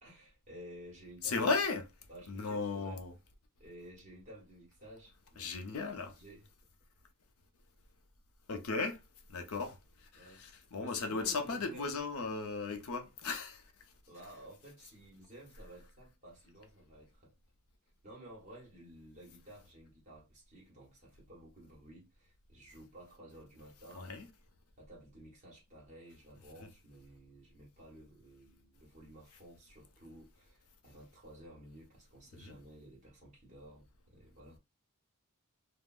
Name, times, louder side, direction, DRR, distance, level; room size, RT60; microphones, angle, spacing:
voice 1, 0.0-1.5 2.1-3.0 3.6-6.5 10.2-10.4 10.8-11.9 14.1-17.3 18.0-24.1 24.8-34.6, right 1 dB, 30° right, 1.0 m, -54 dB
voice 2, 1.2-1.9 2.3-3.1 5.4-6.1 8.5-9.0 9.3-9.8 10.1-13.6 23.9-24.3 32.4-32.6, left 4 dB, 75° left, 0.6 m, -36 dB
3.5 x 2.0 x 2.3 m
head